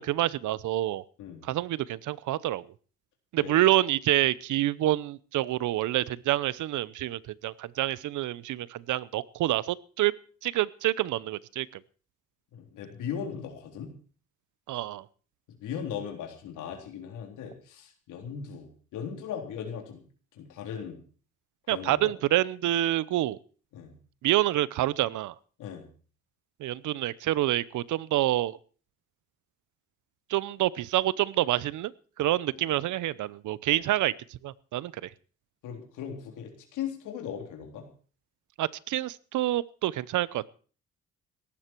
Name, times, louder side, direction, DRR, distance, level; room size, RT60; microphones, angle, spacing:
voice 1, 0.0-1.0 1.5-2.6 3.3-10.1 10.4-11.7 14.7-15.0 21.7-23.4 24.2-25.3 26.6-28.6 30.3-31.9 32.2-34.1 34.4-35.1 38.6-40.5, right 14 dB, 75° right, 20 dB, 0.8 m, -27 dB
voice 2, 12.5-13.9 15.6-20.0 20.3-21.0 21.7-22.1 23.7-23.9 25.6-25.8 32.5-32.8 35.6-37.8, left 8 dB, 90° left, 2 dB, 3.8 m, -38 dB
18.0 x 14.5 x 4.6 m, 0.41 s
cardioid pair, 90°, 30 cm